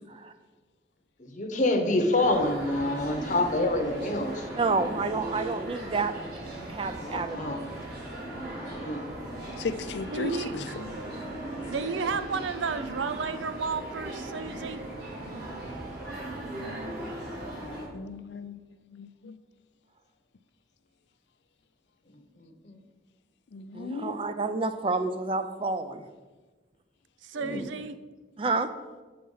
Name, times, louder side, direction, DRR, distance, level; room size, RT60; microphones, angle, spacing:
voice 1, 1.2-4.4 7.0-7.6 8.5-9.1 22.6-22.8 27.4-27.6, left 2 dB, 40° left, 5 dB, 0.9 m, -27 dB
sound 1, 2.2-17.8, right 1 dB, 55° right, 2.7 m, -38 dB
voice 2, 4.6-6.1 6.4-7.4 23.7-26.1 28.4-28.7, right 3 dB, 30° right, 9 dB, 0.4 m, -29 dB
voice 3, 9.6-10.7 17.9-18.6 18.9-19.3 23.5-24.3, left 4 dB, 70° left, 12 dB, 0.4 m, -36 dB
voice 4, 10.1-10.8 11.6-14.8 27.2-28.0, right 5 dB, 90° right, 12 dB, 0.5 m, -32 dB
7.7 x 4.3 x 5.5 m, 1.3 s
head